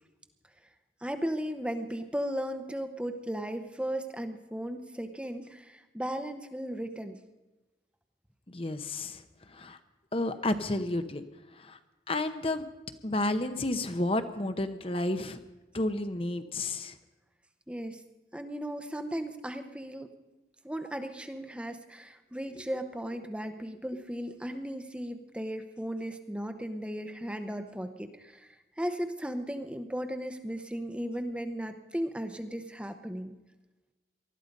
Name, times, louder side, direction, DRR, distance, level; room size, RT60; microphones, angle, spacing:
voice 1, 1.0-7.2 17.7-18.0 18.3-20.1 20.6-33.3, equal, 5° right, 7 dB, 0.8 m, -36 dB
voice 2, 8.5-9.2 9.5-9.8 10.1-11.2 11.5-11.8 12.1-12.7 13.0-15.4 15.7-16.9, left 2 dB, 30° left, 9 dB, 0.8 m, -31 dB
19.5 x 13.0 x 5.3 m, 1.1 s
head